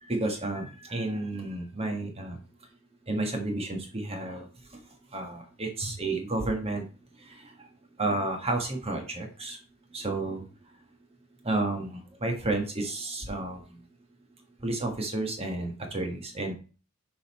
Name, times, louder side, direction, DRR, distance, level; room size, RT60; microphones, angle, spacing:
voice 1, 0.1-2.4 3.1-4.5 5.1-6.9 7.2-7.5 8.0-9.6 9.9-10.4 11.4-13.8 14.6-16.5, right 2 dB, 30° right, 4 dB, 1.4 m, -31 dB
7.0 x 4.0 x 4.3 m, 0.36 s
head